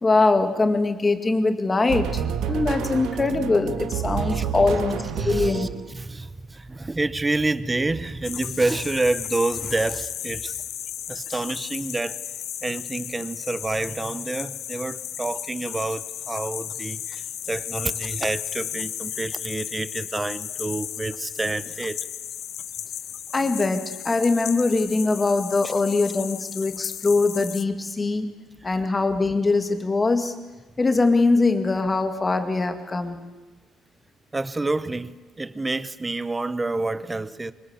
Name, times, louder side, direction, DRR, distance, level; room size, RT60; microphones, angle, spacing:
voice 1, 0.0-2.2 2.5-5.8 23.3-28.3 28.6-30.3 30.8-33.2, left 3 dB, 20° left, 2.0 m, -22 dB
sound 1, 1.9-6.0, right 7 dB, 90° right, 1.9 m, -29 dB
voice 2, 5.2-10.6 11.1-12.2 12.6-22.0 34.3-37.5, right 2 dB, 15° right, 0.8 m, -28 dB
sound 2, 8.2-27.6, left 10 dB, 60° left, 0.9 m, -34 dB
25.0 x 24.5 x 8.2 m
cardioid pair, 155°, 0 cm